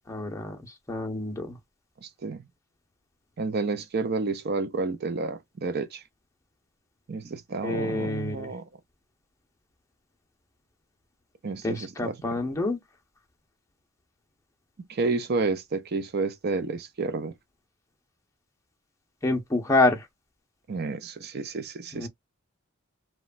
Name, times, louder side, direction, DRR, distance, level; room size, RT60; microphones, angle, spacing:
voice 1, 0.0-1.6 7.6-8.5 11.6-12.8 19.2-20.1 21.9-22.1, left 2 dB, 15° left, 0.6 m, -27 dB
voice 2, 2.0-2.4 3.4-6.0 7.1-8.6 11.4-12.2 14.9-17.3 20.7-22.1, right 3 dB, 50° right, 0.4 m, -30 dB
3.1 x 2.2 x 2.4 m
head